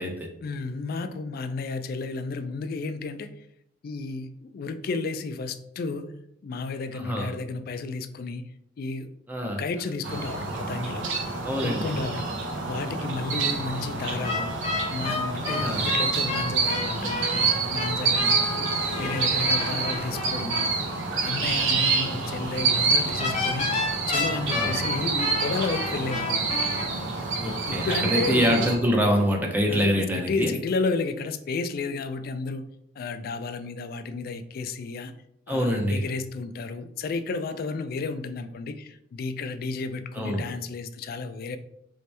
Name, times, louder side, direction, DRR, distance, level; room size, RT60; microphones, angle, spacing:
voice 1, 0.4-3.5 3.8-6.1 6.4-8.5 8.8-9.1 9.6-11.1 11.6-14.5 14.9-18.4 19.0-20.7 21.2-23.7 24.1-26.6 27.7-28.6 29.7-32.6 33.0-35.1 35.5-41.6, left 4 dB, 50° left, 10 dB, 0.3 m, -32 dB
voice 2, 6.9-7.3 9.3-9.6 11.4-12.0 15.5-15.9 18.6-18.7 18.9-19.2 24.5-24.9 27.4-30.5 35.5-36.0 40.1-40.4, equal, 10° right, 1 dB, 0.5 m, -25 dB
sound 1, 10.0-28.8, right 4 dB, 80° right, 0.7 m, -27 dB
sound 2, 14.2-20.7 23.2-26.8, left 3 dB, 35° left, 0.7 m, -31 dB
3.1 x 2.9 x 3.3 m, 0.75 s
head